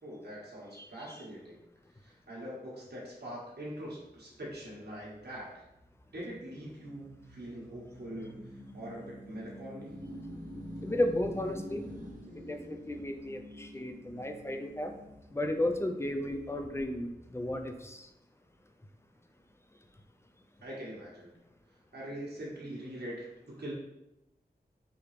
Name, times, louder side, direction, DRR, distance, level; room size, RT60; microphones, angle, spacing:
voice 1, 0.0-1.5 2.0-5.6 6.1-9.9 20.6-21.3 21.9-23.7, right 1 dB, 75° right, -5 dB, 1.5 m, -43 dB
voice 2, 0.7-1.2 10.8-11.9 12.4-14.9 15.3-18.1, left 1 dB, 15° left, 5 dB, 0.5 m, -34 dB
sound 1, 4.1-17.7, equal, 50° right, 1.0 m, -48 dB
4.9 x 2.9 x 3.2 m, 0.90 s
wide cardioid pair, 50°, 17 cm